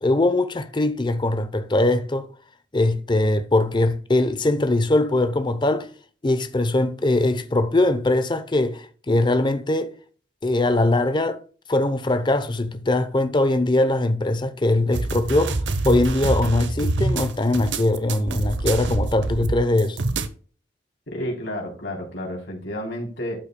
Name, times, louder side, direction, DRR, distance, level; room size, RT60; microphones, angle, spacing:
voice 1, 0.0-2.3 2.7-5.9 6.2-9.9 10.4-11.4 11.7-15.6 15.8-20.0, left 2 dB, 25° left, 0.7 m, -21 dB
sound 1, 14.9-20.3, right 2 dB, 75° right, 0.7 m, -26 dB
voice 2, 21.1-23.4, left 1 dB, 70° left, 3.3 m, -31 dB
12.0 x 5.5 x 2.2 m
head